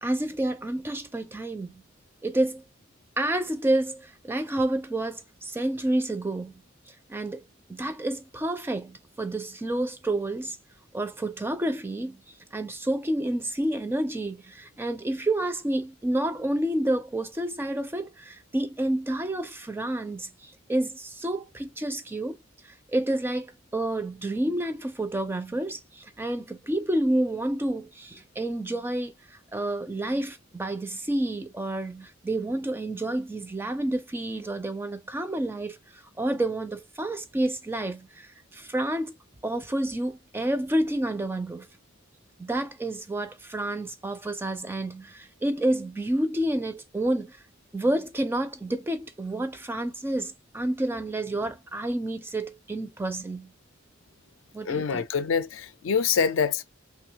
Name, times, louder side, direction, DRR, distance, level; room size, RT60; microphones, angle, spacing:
voice 1, 0.0-1.8 2.2-2.6 3.2-6.5 6.9-7.4 7.7-10.6 10.9-12.2 12.5-22.4 22.6-39.2 39.4-41.7 42.4-47.4 47.7-53.5 54.5-55.0, right 1 dB, 10° right, 0.4 m, -29 dB
voice 2, 54.6-56.6, left 6 dB, 75° left, 0.4 m, -25 dB
3.2 x 2.2 x 2.8 m
head